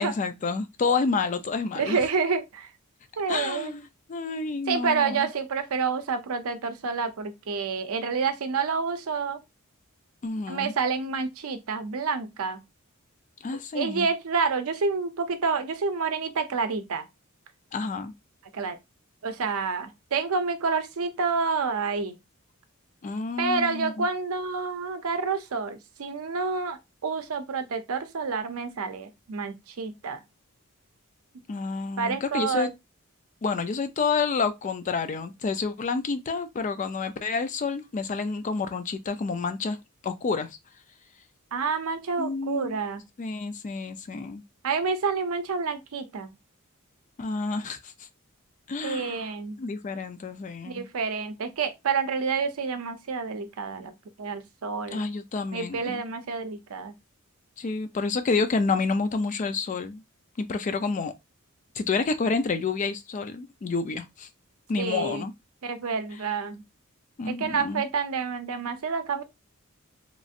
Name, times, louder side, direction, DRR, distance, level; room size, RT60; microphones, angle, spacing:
voice 1, 0.0-2.0 3.3-3.8 4.1-5.3 10.2-10.7 13.4-14.1 17.7-18.1 23.0-24.1 31.5-32.7 33.4-39.8 40.0-40.5 42.2-42.8 43.2-44.4 47.2-47.9 48.7-49.3 49.6-50.9 54.9-56.0 57.6-60.0 60.4-61.1 61.8-64.3 64.7-65.3 67.2-67.8, left 4 dB, 35° left, 0.3 m, -29 dB
voice 2, 1.8-2.7 3.2-3.7 4.7-9.4 10.5-12.6 13.7-17.1 18.5-18.8 19.2-22.1 23.4-30.2 32.0-32.7 41.5-43.0 44.6-46.3 48.8-49.6 50.7-55.0 55.5-56.9 64.8-65.2 65.6-66.6 67.3-69.2, right 5 dB, 75° right, 0.5 m, -28 dB
3.0 x 2.6 x 2.4 m
head